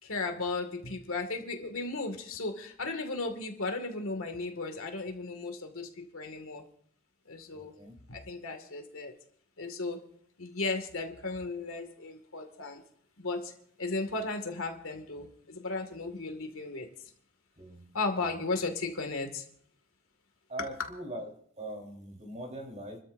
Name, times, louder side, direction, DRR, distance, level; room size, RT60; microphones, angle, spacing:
voice 1, 0.0-6.6 7.3-7.7 8.1-9.1 9.6-10.0 10.4-12.8 13.2-13.5 13.8-17.1 17.9-19.4, left 3 dB, 65° left, 5 dB, 2.1 m, -35 dB
voice 2, 7.5-7.9 17.6-17.9 18.2-18.3 20.5-21.3 21.6-23.0, right 1 dB, 30° right, 1 dB, 3.9 m, -41 dB
29.5 x 13.5 x 2.6 m, 0.64 s
head